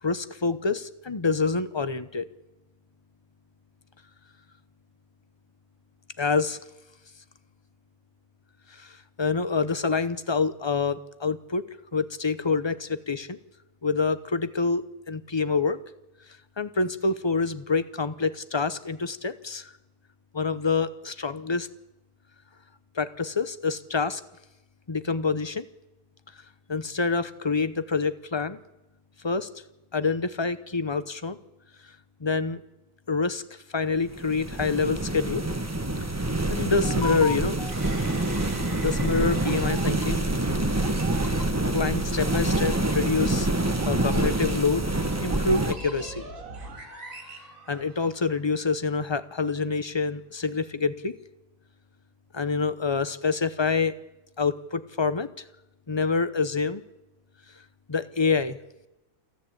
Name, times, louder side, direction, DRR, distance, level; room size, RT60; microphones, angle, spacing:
voice 1, 0.0-2.3 6.2-6.6 8.7-11.6 11.9-13.4 13.8-15.8 16.6-19.7 20.3-21.7 22.9-24.2 24.9-25.6 26.7-28.6 29.2-29.5 29.9-31.4 32.2-32.6 33.1-35.4 36.5-37.7 38.8-40.2 41.3-41.4 41.7-43.5 43.9-44.8 45.2-46.2 47.7-51.1 52.3-54.0 54.4-55.3 55.9-56.8 57.9-58.6, left 4 dB, 30° left, 13 dB, 0.5 m, -26 dB
sound 1, 34.0-45.7, right 2 dB, 10° right, 1.1 m, -26 dB
sound 2, 37.7-48.3, right 3 dB, 50° right, 3.7 m, -40 dB
28.5 x 10.5 x 8.6 m, 0.96 s
omnidirectional pair, 1.8 m